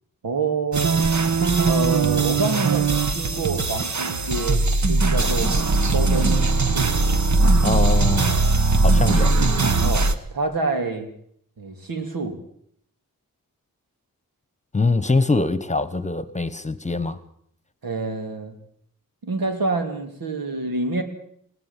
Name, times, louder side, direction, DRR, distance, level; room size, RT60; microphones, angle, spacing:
voice 1, 0.2-1.0 1.6-2.9 3.1-5.5 5.9-6.9 9.8-11.1 11.6-12.4 17.8-18.6 19.2-21.0, right 3 dB, 85° right, 3.3 m, -27 dB
sound 1, 0.7-10.2, right 3 dB, 55° right, 1.5 m, -20 dB
voice 2, 7.6-8.4 8.8-9.3 14.7-17.2, left 3 dB, 20° left, 1.2 m, -23 dB
20.0 x 17.0 x 7.5 m
wide cardioid pair, 110°, 34 cm